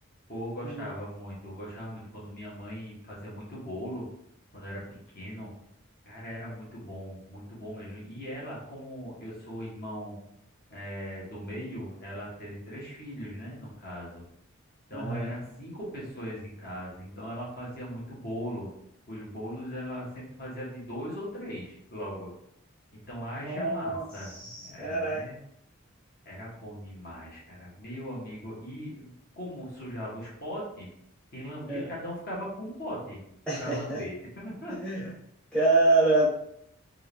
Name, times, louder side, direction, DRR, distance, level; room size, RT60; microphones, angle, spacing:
voice 1, 0.3-4.1 4.5-4.8 5.1-5.5 6.0-10.1 10.7-14.2 14.9-18.7 19.1-22.3 22.9-25.4 26.2-30.9 31.3-33.2 33.6-34.7, equal, 45° left, -6 dB, 1.4 m, -39 dB
voice 2, 14.9-15.3 23.4-25.2 31.7-31.9 33.5-34.0 34.8-35.0 35.5-36.3, right 2 dB, 5° left, -8 dB, 0.8 m, -26 dB
3.7 x 2.6 x 3.5 m, 0.74 s
head